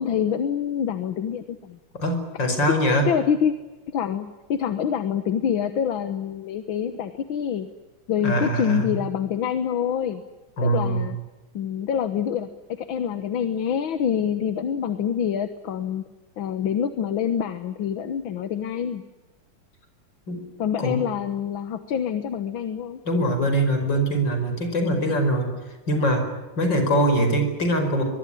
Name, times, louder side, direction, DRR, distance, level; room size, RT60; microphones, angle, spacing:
voice 1, 0.0-1.8 2.8-3.5 3.9-7.7 8.1-10.2 10.6-11.2 11.5-16.0 16.4-19.0 20.6-23.0, left 8 dB, 85° left, 11 dB, 1.9 m, -26 dB
voice 2, 1.9-3.1 8.2-9.0 10.6-11.1 20.3-20.4 20.8-21.0 23.1-25.5 25.9-26.2 26.6-28.0, right 1 dB, 65° left, 6 dB, 5.8 m, -22 dB
23.5 x 22.5 x 10.0 m, 1.1 s
omnidirectional pair, 2.1 m